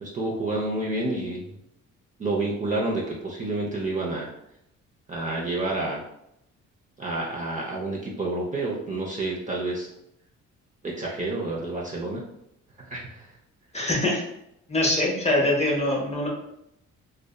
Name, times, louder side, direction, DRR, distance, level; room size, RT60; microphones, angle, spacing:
voice 1, 0.0-1.5 2.2-4.3 5.1-6.0 7.0-9.9 10.8-12.2 12.8-13.2, right 2 dB, 25° right, -4 dB, 0.5 m, -29 dB
voice 2, 13.7-14.2 14.7-16.3, left 1 dB, 20° left, -2 dB, 0.7 m, -23 dB
2.6 x 2.2 x 2.2 m, 0.80 s
cardioid pair, 90°, 30 cm